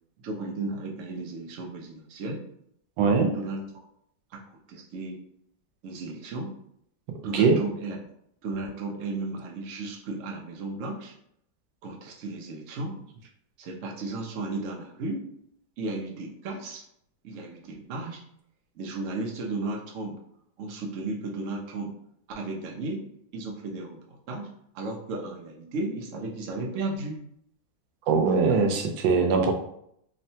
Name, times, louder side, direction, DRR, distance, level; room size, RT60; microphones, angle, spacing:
voice 1, 0.2-2.4 3.3-3.6 4.3-4.4 4.7-5.2 5.8-6.5 7.2-8.0 8.4-11.1 11.8-12.9 13.6-15.3 15.8-16.8 17.2-18.2 18.7-20.2 20.6-21.9 22.3-23.1 23.3-24.5 24.7-27.2 28.2-28.7, right 2 dB, 65° right, 0 dB, 0.8 m, -34 dB
voice 2, 3.0-3.3 7.3-7.6 28.1-29.5, right 4 dB, 85° right, 3 dB, 1.2 m, -21 dB
3.7 x 2.1 x 2.7 m, 0.71 s
omnidirectional pair, 1.9 m